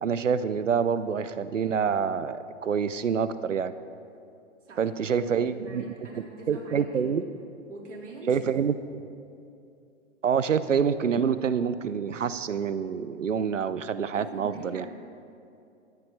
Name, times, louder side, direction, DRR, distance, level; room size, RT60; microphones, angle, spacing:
voice 1, 0.0-3.7 4.8-6.1 6.5-7.3 8.3-9.0 10.2-14.9, right 7 dB, 90° right, 14 dB, 0.6 m, -27 dB
voice 2, 4.6-7.1 7.7-8.7 14.1-14.9, right 2 dB, 75° right, -2 dB, 3.3 m, -44 dB
14.0 x 12.0 x 4.6 m, 2.6 s
figure-of-eight pair, 115°, 37 cm